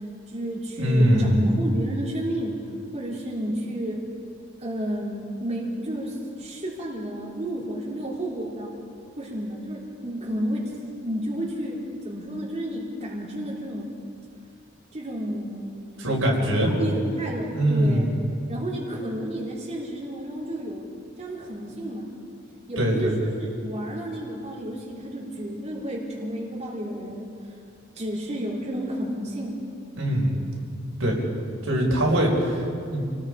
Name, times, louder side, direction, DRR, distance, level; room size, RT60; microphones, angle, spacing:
voice 1, 0.3-2.6 2.9-4.1 4.6-8.7 9.2-13.9 14.9-15.8 16.4-18.1 18.5-20.9 21.2-22.1 22.7-27.3 27.9-29.6, equal, 35° right, -5 dB, 3.4 m, -31 dB
voice 2, 0.8-1.5 16.0-16.7 17.5-18.1 22.8-23.2 29.9-30.4 31.0-31.2 31.6-33.1, equal, 80° right, -2 dB, 5.0 m, -22 dB
28.5 x 20.0 x 4.9 m, 2.4 s
head